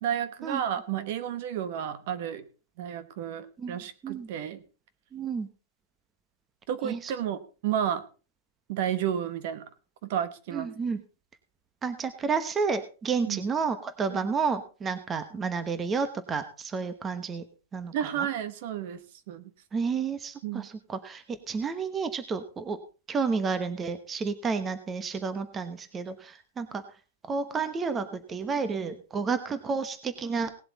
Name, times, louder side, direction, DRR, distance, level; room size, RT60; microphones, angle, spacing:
voice 1, 0.0-2.4 2.8-4.6 6.7-8.0 8.7-9.6 10.0-10.7 13.2-13.4 14.1-14.3 17.9-19.0 19.3-19.5 20.4-20.7, right 9 dB, 50° right, 13 dB, 1.2 m, -31 dB
voice 2, 5.1-5.5 6.8-7.1 10.5-11.0 11.8-17.4 17.7-17.9 19.7-22.8 23.1-26.8 27.3-30.5, right 5 dB, 15° right, 11 dB, 1.0 m, -31 dB
18.5 x 7.8 x 4.0 m, 0.34 s
supercardioid pair, 160°, 0 cm